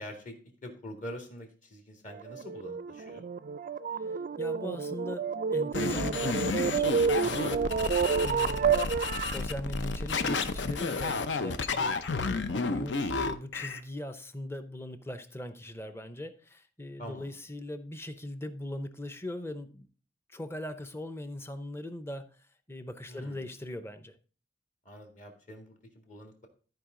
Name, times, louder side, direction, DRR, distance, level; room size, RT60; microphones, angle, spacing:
voice 1, 0.0-3.2 17.0-17.4 23.0-23.4 24.8-26.5, equal, 45° left, 3 dB, 1.9 m, -45 dB
sound 1, 2.1-9.4, right 6 dB, 45° right, 0.3 m, -29 dB
voice 2, 4.4-7.6 8.2-8.9 9.2-19.9 20.3-22.3 22.7-24.1, left 1 dB, 15° left, 11 dB, 0.7 m, -40 dB
sound 2, 5.7-13.8, left 3 dB, 75° left, 0.7 m, -31 dB
13.5 x 4.7 x 3.8 m, 0.38 s
head